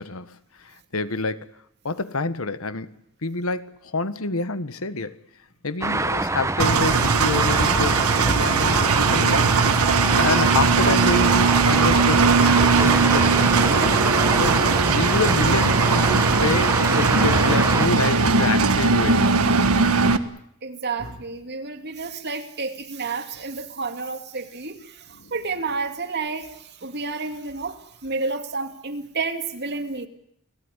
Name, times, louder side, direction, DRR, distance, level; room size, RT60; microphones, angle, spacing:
voice 1, 0.0-1.5 1.8-2.9 3.2-5.2 5.6-9.5 10.2-13.6 14.4-19.2 25.2-25.3, left 3 dB, 70° left, 1.4 m, -28 dB
Traffic noise roadway noise, 5.8-17.9, right 2 dB, 15° right, 1.0 m, -25 dB
Engine, 6.6-20.2, right 4 dB, 90° right, 1.5 m, -19 dB
voice 2, 20.6-30.1, right 4 dB, 50° right, 2.6 m, -30 dB
30.0 x 18.0 x 9.9 m
head